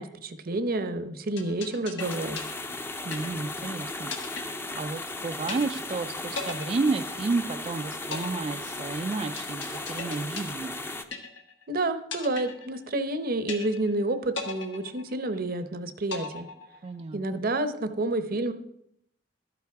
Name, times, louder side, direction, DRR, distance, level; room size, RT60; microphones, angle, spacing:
voice 1, 0.0-2.4 11.7-16.5 17.1-18.5, right 2 dB, 50° right, 10 dB, 0.8 m, -29 dB
sound 1, 1.4-3.7 4.1-5.1 5.5-6.0 6.4-7.6 8.1-11.7 12.1-13.1 13.5-14.0 14.4-15.6 16.1-17.1, left 4 dB, 90° left, 1.5 m, -38 dB
sound 2, 2.0-11.0, left 2 dB, 15° left, 0.6 m, -36 dB
voice 2, 3.0-10.8 16.8-17.2, right 3 dB, 35° right, 6 dB, 0.4 m, -31 dB
12.5 x 9.2 x 3.5 m, 0.75 s
head